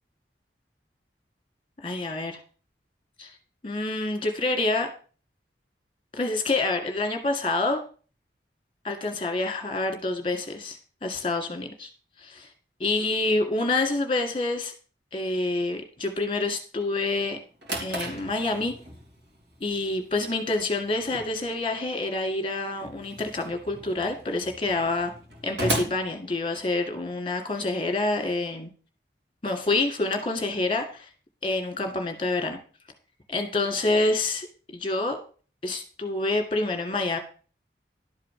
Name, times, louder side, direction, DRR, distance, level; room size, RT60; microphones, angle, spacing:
voice 1, 1.8-2.4 3.2-3.3 3.6-4.9 6.1-7.8 8.8-11.9 12.2-12.5 12.8-14.7 15.1-17.4 17.8-18.7 19.6-25.1 25.4-28.7 29.4-31.1 31.4-32.6 33.3-34.5 34.7-35.2 35.6-37.2, left 2 dB, 30° left, 5 dB, 1.9 m, -27 dB
Drawer open or close, 17.3-27.0, right 1 dB, 75° right, 3.3 m, -37 dB
12.0 x 4.9 x 7.5 m, 0.39 s
head